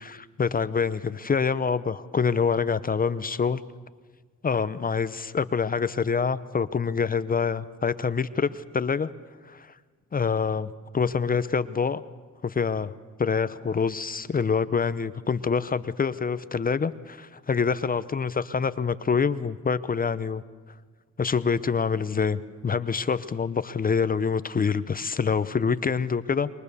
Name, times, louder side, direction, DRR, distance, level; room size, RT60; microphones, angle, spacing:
voice 1, 0.0-3.6 4.4-9.1 9.5-9.7 10.1-12.0 12.4-12.9 13.2-20.4 21.2-26.5, left 5 dB, 30° left, 14 dB, 0.7 m, -26 dB
26.5 x 23.0 x 7.0 m, 1.5 s
cardioid pair, 90°, 30 cm